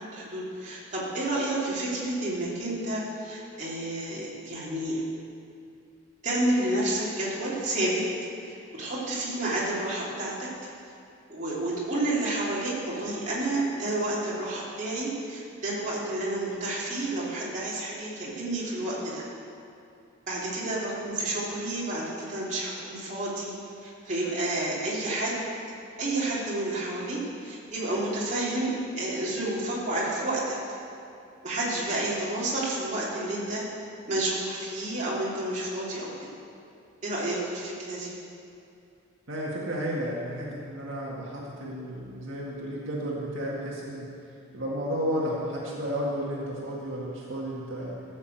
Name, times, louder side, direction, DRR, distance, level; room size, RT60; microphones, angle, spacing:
voice 1, 0.1-5.0 6.2-8.0 8.5-10.5 11.3-19.2 20.3-25.4 26.0-30.6 31.4-33.6 34.1-36.1 37.0-38.1, right 1 dB, 35° right, -7 dB, 2.9 m, -30 dB
voice 2, 39.3-48.0, equal, 70° right, -5 dB, 1.9 m, -32 dB
14.5 x 6.6 x 7.8 m, 2.6 s
head